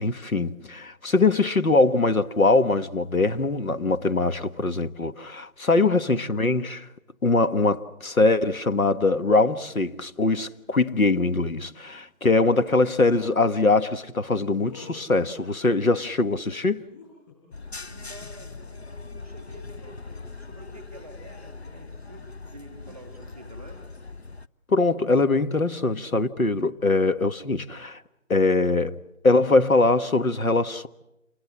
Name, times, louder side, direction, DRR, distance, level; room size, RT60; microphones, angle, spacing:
voice 1, 0.0-6.9 7.2-16.8 24.7-28.0 28.3-28.9 29.2-30.9, left 3 dB, 85° left, 1.5 m, -22 dB
voice 2, 5.7-6.3 17.9-23.8, right 1 dB, ahead, 1.4 m, -47 dB
sound 1, 13.0-13.3 14.6-15.8 16.5-17.5 18.1-18.6, left 6 dB, 15° left, 5.1 m, -48 dB
sound 2, 17.5-24.5, left 3 dB, 50° left, 0.8 m, -41 dB
28.5 x 21.0 x 7.5 m
figure-of-eight pair, 170°, 41 cm